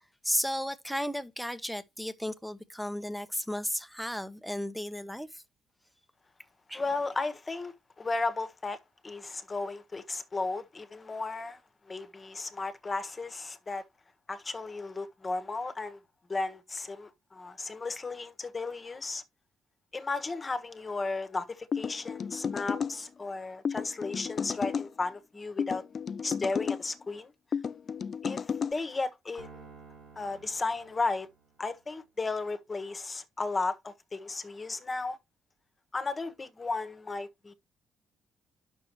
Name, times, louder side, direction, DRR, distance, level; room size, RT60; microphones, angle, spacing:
voice 1, 0.2-5.4 6.7-6.8, equal, ahead, 1.0 m, -34 dB
voice 2, 6.7-11.6 11.9-13.8 14.3-16.0 16.3-19.2 19.9-25.8 26.2-27.3 28.2-29.7 30.2-31.3 31.6-35.2 35.9-37.5, left 3 dB, 25° left, 1.3 m, -34 dB
sound 1, 21.7-23.0 23.7-24.9 25.6-26.8 27.5-28.7, left 6 dB, 45° left, 0.4 m, -32 dB
sound 2, 29.4-31.8, right 5 dB, 80° right, 2.9 m, -52 dB
9.4 x 6.3 x 3.1 m
cardioid pair, 90°, 0 cm